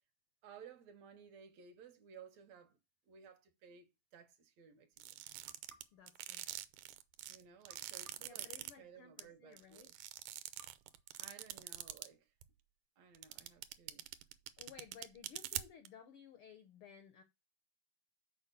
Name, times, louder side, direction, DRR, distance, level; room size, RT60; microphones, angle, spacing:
voice 1, 0.4-2.8 3.1-4.9 7.3-10.0 11.2-12.3 13.0-14.1, right 7 dB, 70° right, 2.0 m, -58 dB
sound 1, 5.0-8.7 9.2-9.3 9.6-12.1 12.4-12.5 13.1-15.9, right 14 dB, 85° right, 2.1 m, -44 dB
sound 2, 5.5-7.1 7.7-9.3 10.6-11.9, right 2 dB, 50° right, 0.8 m, -69 dB
voice 2, 5.9-6.5 8.2-9.9 13.4-13.6 14.6-17.2, left 7 dB, 80° left, 1.2 m, -57 dB
6.3 x 4.8 x 6.7 m
omnidirectional pair, 3.5 m